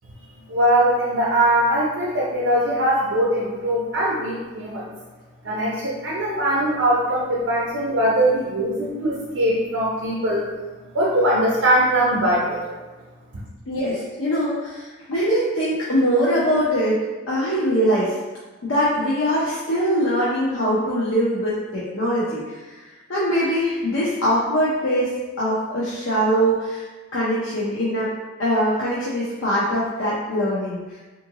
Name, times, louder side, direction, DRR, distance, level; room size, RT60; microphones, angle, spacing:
voice 1, 0.5-4.9 5.4-10.5 10.9-12.7 13.3-13.4, right 1 dB, 70° right, -4 dB, 0.5 m, -21 dB
voice 2, 13.7-17.0 17.3-18.1 18.6-22.8 23.1-28.1 28.4-31.0, equal, 80° left, -8 dB, 0.6 m, -22 dB
3.6 x 2.5 x 2.8 m, 1.2 s
head